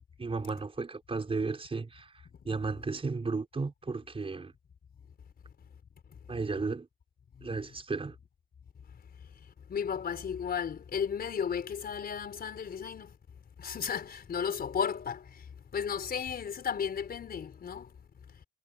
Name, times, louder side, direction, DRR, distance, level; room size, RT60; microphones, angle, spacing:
voice 1, 0.2-2.1 2.5-4.5 6.3-6.9 7.4-8.2, right 4 dB, 30° right, 5.2 m, -34 dB
voice 2, 9.7-13.1 13.6-15.3 15.7-17.9, left 7 dB, 50° left, 4.8 m, -34 dB
cardioid pair, 90°, 20 cm